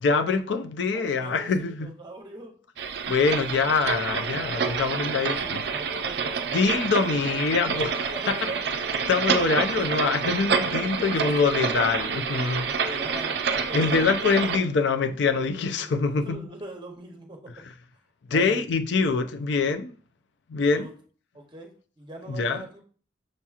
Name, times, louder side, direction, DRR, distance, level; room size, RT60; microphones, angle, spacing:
voice 1, 0.0-1.9 3.1-5.6 6.5-8.3 9.1-12.7 13.7-16.4 18.3-19.9 20.5-20.9 22.3-22.6, left 4 dB, 75° left, 0.4 m, -24 dB
voice 2, 0.9-3.2 5.1-6.4 8.1-8.8 10.9-11.5 12.8-13.4 13.7-14.1 15.3-17.5 18.3-18.6 20.7-20.9 21.3-21.7 22.0-22.8, right 2 dB, 25° right, 0.7 m, -42 dB
sound 1, 2.8-14.6, right 5 dB, 60° right, 0.3 m, -28 dB
6.4 x 2.8 x 2.4 m
head